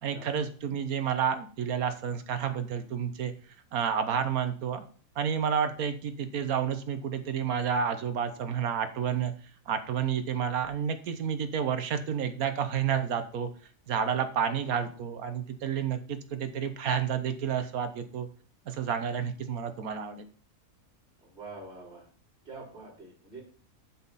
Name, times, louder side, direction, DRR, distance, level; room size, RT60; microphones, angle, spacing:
voice 1, 0.0-3.3 3.7-4.8 5.2-9.3 9.7-13.5 13.9-18.3 18.7-20.3, right 7 dB, 85° right, 9 dB, 1.5 m, -30 dB
voice 2, 21.2-22.1 22.4-23.4, right 3 dB, 50° right, -6 dB, 4.8 m, -45 dB
8.3 x 7.4 x 4.1 m, 0.42 s
omnidirectional pair, 1.5 m